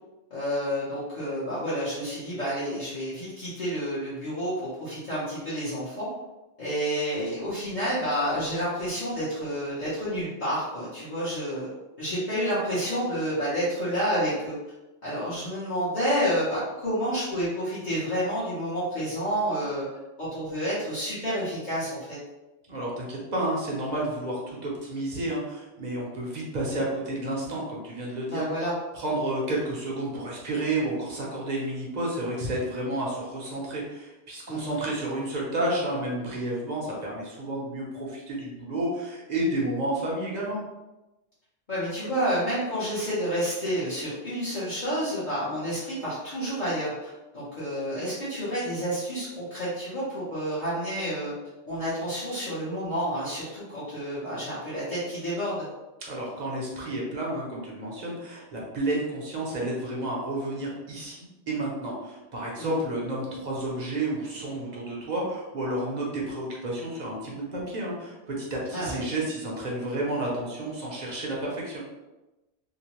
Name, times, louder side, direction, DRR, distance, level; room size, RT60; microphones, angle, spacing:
voice 1, 0.3-4.5 4.8-6.1 6.6-11.7 12.0-14.5 15.0-19.9 20.2-22.2 28.3-28.7 34.5-34.8 41.7-51.3 51.7-55.7 62.6-62.8 68.7-69.0, equal, 45° left, -11 dB, 0.9 m, -29 dB
voice 2, 22.7-28.4 28.9-40.6 56.0-71.8, right 1 dB, 45° right, -4 dB, 0.7 m, -31 dB
2.8 x 2.1 x 2.9 m, 1.0 s
omnidirectional pair, 1.2 m